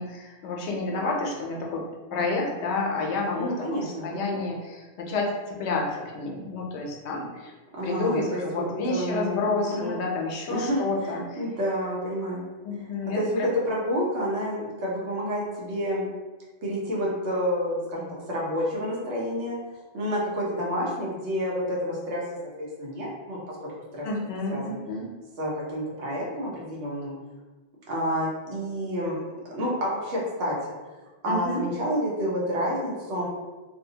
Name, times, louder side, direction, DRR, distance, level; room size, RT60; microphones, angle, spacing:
voice 1, 0.0-1.8 2.1-7.5 7.8-11.4 12.6-13.5 24.0-25.1 31.3-31.6, left 3 dB, 80° left, -1 dB, 0.8 m, -29 dB
voice 2, 3.4-4.4 7.7-9.9 10.5-12.4 12.7-16.1 16.6-19.6 19.9-22.2 22.6-24.1 24.5-24.8 25.4-27.1 27.9-29.2 29.5-30.7 31.2-33.2, equal, 80° right, -4 dB, 1.1 m, -29 dB
2.6 x 2.1 x 2.7 m, 1.3 s
omnidirectional pair, 1.1 m